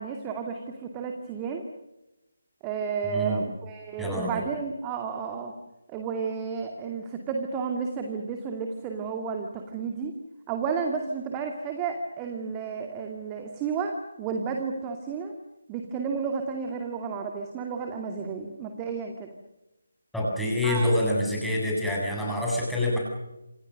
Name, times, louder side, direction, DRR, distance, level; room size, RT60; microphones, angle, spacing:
voice 1, 0.0-1.6 2.6-5.5 5.9-10.1 10.5-15.3 15.7-19.3 20.6-20.9, right 5 dB, 15° right, 4 dB, 2.4 m, -32 dB
voice 2, 3.0-3.4 4.0-4.4 20.1-23.0, left 1 dB, ahead, -4 dB, 7.6 m, -26 dB
28.0 x 28.0 x 6.6 m, 0.98 s
figure-of-eight pair, 155°, 0 cm